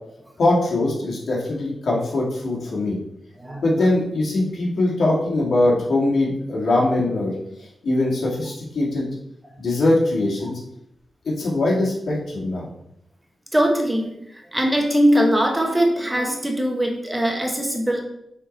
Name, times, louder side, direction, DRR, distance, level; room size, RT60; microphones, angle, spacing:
voice 1, 0.4-3.0 3.6-7.3 7.8-9.1 9.6-10.6 11.2-12.7, left 2 dB, 75° left, -4 dB, 2.0 m, -21 dB
voice 2, 13.5-14.1 14.5-18.0, equal, 15° right, 2 dB, 1.1 m, -20 dB
6.4 x 3.8 x 4.0 m, 0.75 s
wide cardioid pair, 95°, 0 cm